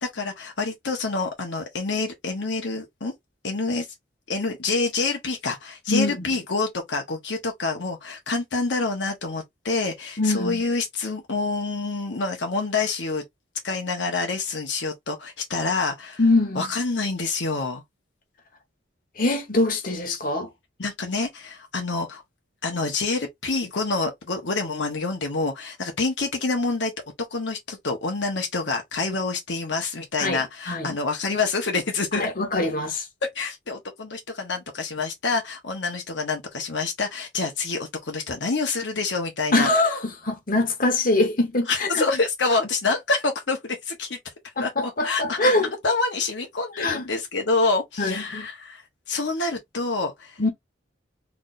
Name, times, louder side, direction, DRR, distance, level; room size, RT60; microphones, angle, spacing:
voice 1, 0.0-3.1 3.4-3.9 4.3-13.2 13.6-16.2 16.5-17.8 20.8-22.2 22.6-26.9 27.3-32.3 33.3-39.7 41.7-44.2 44.6-45.5 45.8-48.8 49.1-50.5, left 3 dB, 70° left, 1.0 m, -27 dB
voice 2, 5.9-6.2 10.2-10.6 16.2-16.7 19.2-20.5 30.2-31.0 32.1-33.1 39.5-42.0 44.6-45.7 46.8-47.0 48.0-48.5 50.4-50.5, left 2 dB, 45° left, 1.1 m, -23 dB
4.0 x 3.4 x 2.5 m
head